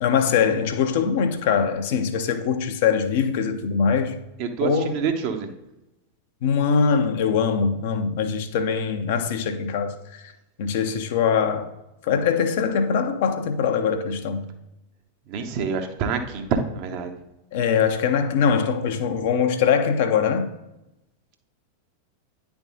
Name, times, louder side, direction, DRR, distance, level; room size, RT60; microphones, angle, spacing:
voice 1, 0.0-4.2 4.6-5.0 6.4-10.3 10.6-11.7 12.0-14.5 17.5-20.5, left 6 dB, 50° left, 0.6 m, -22 dB
voice 2, 4.4-5.5 15.3-17.2, right 6 dB, 45° right, 0.8 m, -27 dB
9.6 x 3.5 x 3.8 m
figure-of-eight pair, 90°, 0 cm